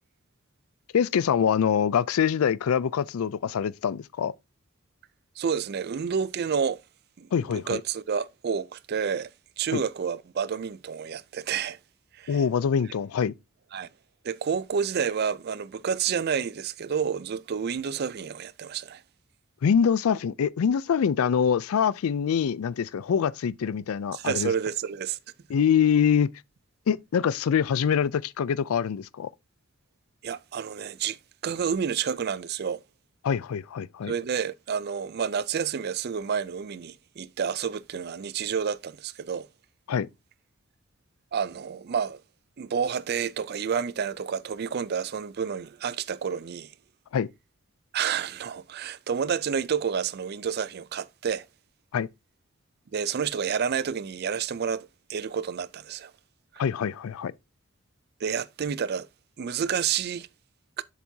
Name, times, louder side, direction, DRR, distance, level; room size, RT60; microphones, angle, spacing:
voice 1, 0.9-4.3 7.3-7.8 9.7-9.8 12.3-13.3 19.6-24.5 25.5-26.3 26.9-29.3 33.2-34.1 39.9-40.1 47.1-47.3 51.9-52.1 56.6-57.3, left 7 dB, 85° left, 0.4 m, -24 dB
voice 2, 5.4-6.8 7.2-9.3 9.6-11.8 12.1-12.4 13.7-13.9 14.2-19.0 24.1-25.2 30.2-31.2 31.4-32.8 34.1-39.5 41.3-42.2 42.6-46.7 47.9-51.5 52.9-56.1 56.5-56.6 58.2-59.1 59.4-60.3 60.8-60.9, right 7 dB, 50° right, 0.4 m, -29 dB
7.3 x 7.1 x 2.7 m
head